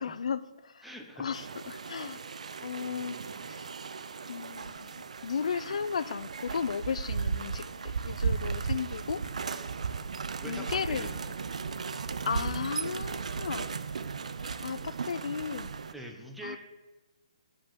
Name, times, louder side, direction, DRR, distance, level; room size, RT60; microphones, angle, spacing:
voice 1, 0.0-0.9 1.2-2.2 2.6-3.2 3.5-3.6 4.3-7.6 8.0-9.2 10.5-11.1 12.2-13.7 14.6-15.7 16.4-16.6, left 6 dB, 70° left, 16 dB, 0.4 m, -35 dB
voice 2, 0.8-1.2 2.8-3.5 10.4-11.1 15.9-16.6, right 1 dB, ahead, 1 dB, 0.7 m, -44 dB
sound 1, 1.3-15.9, right 5 dB, 85° right, 0.5 m, -36 dB
8.2 x 5.2 x 7.4 m, 1.2 s
hypercardioid pair, 170°, 4 cm